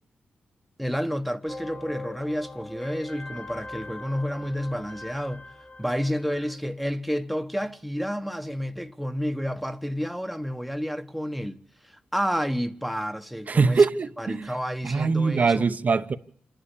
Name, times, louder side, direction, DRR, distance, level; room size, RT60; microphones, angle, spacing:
voice 1, 0.8-5.5 5.8-13.9 14.2-15.7, equal, ahead, 1.2 m, -30 dB
sound 1, 1.5-6.6, left 2 dB, 40° left, 4.0 m, -41 dB
voice 2, 13.5-14.5 14.8-16.2, right 4 dB, 50° right, 1.0 m, -22 dB
27.0 x 11.5 x 8.6 m
cardioid pair, 75°, 3 cm